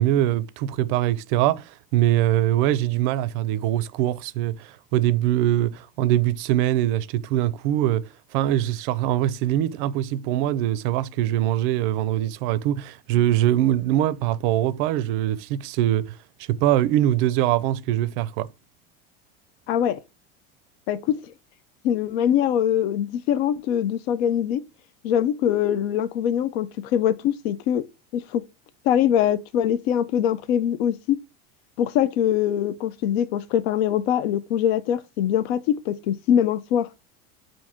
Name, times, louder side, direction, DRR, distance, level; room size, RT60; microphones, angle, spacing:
voice 1, 0.0-16.1 16.5-18.5, right 13 dB, 55° right, 0.4 m, -23 dB
voice 2, 19.7-20.0 20.9-21.3 21.8-24.6 25.0-27.9 28.1-28.4 28.9-31.2 31.8-35.6 35.9-36.9, left 10 dB, 75° left, 0.6 m, -23 dB
5.7 x 2.7 x 3.4 m
cardioid pair, 165°, 31 cm